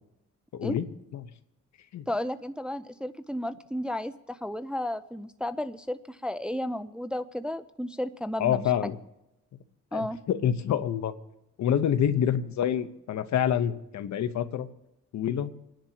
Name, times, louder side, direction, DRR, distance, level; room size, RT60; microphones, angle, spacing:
voice 1, 0.5-0.9 1.1-1.3 1.9-2.0 8.4-9.0 9.9-11.1 11.6-14.7 15.1-15.5, left 9 dB, 65° left, 11 dB, 1.1 m, -27 dB
voice 2, 2.1-8.7 9.9-10.2, left 1 dB, 5° right, 11 dB, 0.5 m, -33 dB
28.5 x 10.5 x 3.0 m, 0.90 s
cardioid pair, 90°, 30 cm